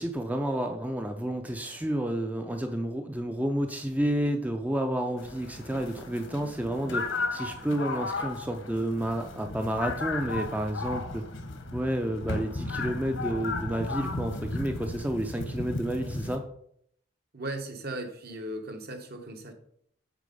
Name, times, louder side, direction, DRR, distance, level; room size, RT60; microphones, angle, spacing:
voice 1, 0.0-11.2 11.7-16.4, right 1 dB, 10° right, 5 dB, 0.5 m, -30 dB
sound 1, 5.2-16.4, left 3 dB, 80° left, 1.2 m, -35 dB
voice 2, 17.3-19.5, right 1 dB, 55° right, 5 dB, 1.2 m, -37 dB
8.2 x 4.2 x 5.4 m, 0.68 s
head